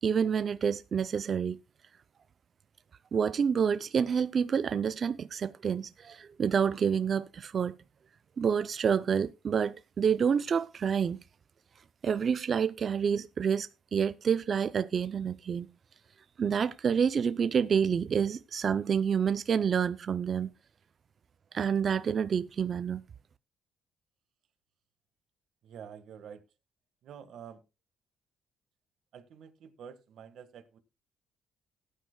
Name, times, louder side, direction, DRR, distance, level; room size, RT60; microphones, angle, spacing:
voice 1, 0.0-1.6 3.1-7.7 8.4-11.2 12.0-15.7 16.4-20.5 21.5-23.0, right 7 dB, 40° right, 0.4 m, -28 dB
voice 2, 25.6-26.4 27.0-27.6 29.1-30.8, right 8 dB, 65° right, 1.5 m, -48 dB
19.0 x 9.2 x 2.2 m
cardioid pair, 145°, 0 cm